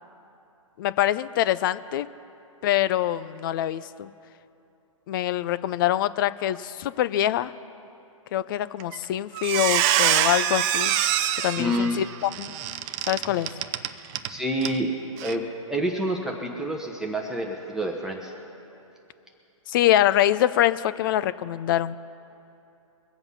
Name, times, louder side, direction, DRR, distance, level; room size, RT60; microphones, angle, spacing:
voice 1, 0.8-2.1 2.6-4.1 5.1-7.5 8.3-11.0 11.4-12.5 13.1-13.5 19.7-22.0, left 12 dB, 40° left, 16 dB, 0.5 m, -24 dB
Squeak, 8.8-9.0 9.3-14.3 14.6-14.8 15.2-15.3, right 11 dB, 30° right, 0.6 m, -25 dB
voice 2, 11.6-12.0 13.3-13.4 14.3-14.9 15.2-18.3, equal, 5° right, -1 dB, 1.0 m, -28 dB
22.5 x 7.9 x 5.5 m, 2.8 s
hypercardioid pair, 130°, 18 cm